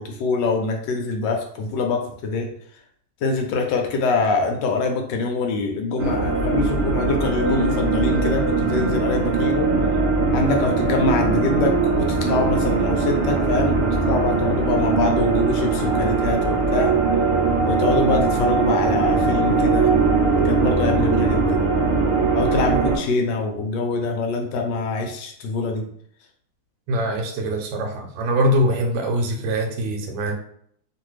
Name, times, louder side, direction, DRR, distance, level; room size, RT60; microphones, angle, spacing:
voice 1, 0.0-2.5 3.2-9.7 10.3-16.9 17.6-19.9 20.4-21.7 22.3-25.9, left 3 dB, 75° left, 3 dB, 1.1 m, -24 dB
sound 1, 6.0-23.0, right 4 dB, 60° right, 0.9 m, -20 dB
voice 2, 26.9-30.3, equal, 75° right, 2 dB, 1.3 m, -23 dB
2.9 x 2.5 x 3.1 m, 0.64 s
omnidirectional pair, 2.2 m